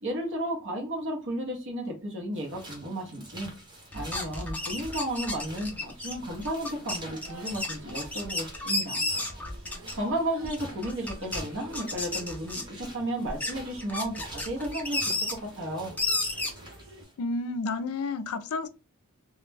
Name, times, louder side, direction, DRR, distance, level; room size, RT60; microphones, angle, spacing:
voice 1, 0.0-3.5 3.9-9.0 9.9-15.9, right 1 dB, 60° right, 0.8 m, -33 dB
sound 1, 2.3-17.2, right 1 dB, 20° right, 0.8 m, -49 dB
sound 2, 3.9-10.1 10.4-11.4 11.7-12.9 13.3-15.3 16.0-16.5, left 2 dB, 5° left, 0.4 m, -32 dB
sound 3, 5.5-17.0, right 2 dB, 85° right, 1.1 m, -50 dB
voice 2, 17.2-18.7, left 3 dB, 75° left, 0.4 m, -31 dB
2.3 x 2.0 x 3.3 m
head